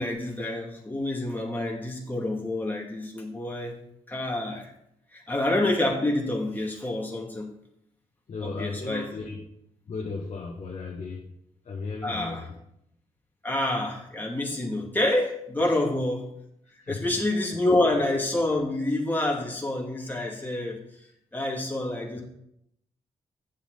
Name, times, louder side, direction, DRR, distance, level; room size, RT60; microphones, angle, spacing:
voice 1, 0.0-3.8 4.1-4.7 5.1-7.5 8.4-9.1 12.0-12.5 13.4-16.3 16.9-20.8 21.3-22.2, left 1 dB, 15° left, -2 dB, 2.2 m, -27 dB
voice 2, 8.3-9.4 9.9-11.3 11.6-12.4 15.6-15.7 16.8-17.1, left 4 dB, 55° left, -1 dB, 1.4 m, -35 dB
8.6 x 7.1 x 4.0 m, 0.76 s
supercardioid pair, 45°, 13 cm